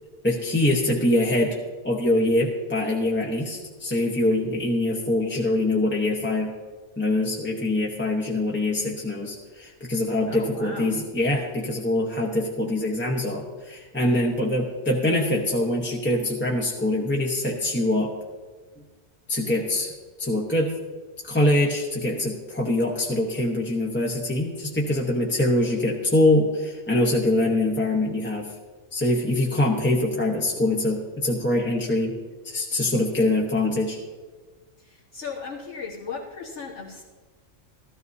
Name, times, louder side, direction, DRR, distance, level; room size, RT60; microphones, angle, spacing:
voice 1, 0.2-1.6 1.8-6.5 7.0-18.1 19.3-19.9 20.2-20.7 21.3-28.5 28.9-32.1 32.4-34.0, left 1 dB, 10° left, -2 dB, 0.9 m, -24 dB
voice 2, 10.3-11.0 34.8-37.0, left 5 dB, 70° left, -7 dB, 1.7 m, -36 dB
13.5 x 13.5 x 2.7 m, 1.4 s
omnidirectional pair, 1.2 m